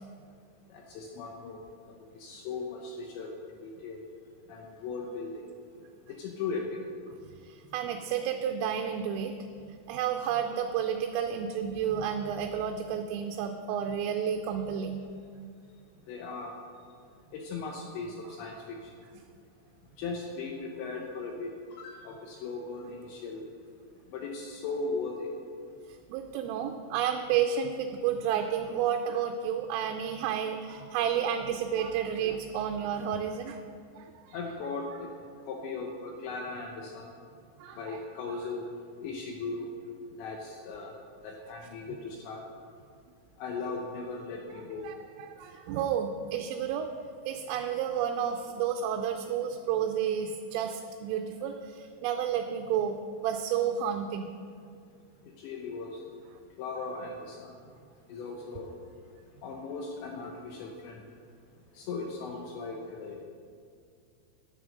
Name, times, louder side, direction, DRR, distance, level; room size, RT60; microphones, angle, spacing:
voice 1, 0.7-1.6 2.1-3.3 3.6-4.0 4.5-5.3 6.2-6.6 16.1-16.5 17.3-18.9 20.0-21.5 21.8-23.5 24.1-25.3 34.3-35.1 35.5-37.0 37.8-38.6 39.0-39.7 40.2-40.9 41.2-42.4 43.4-44.8 55.4-55.9 56.6-57.5 58.1-58.7 59.4-61.0 61.8-63.2, left 4 dB, 75° left, 1 dB, 2.8 m, -38 dB
voice 2, 7.4-9.3 9.9-15.1 26.1-33.6 34.0-34.4 37.6-38.0 44.8-46.9 47.3-54.3, right 8 dB, 85° right, 5 dB, 3.1 m, -31 dB
9.4 x 8.9 x 6.4 m, 2.3 s
omnidirectional pair, 5.8 m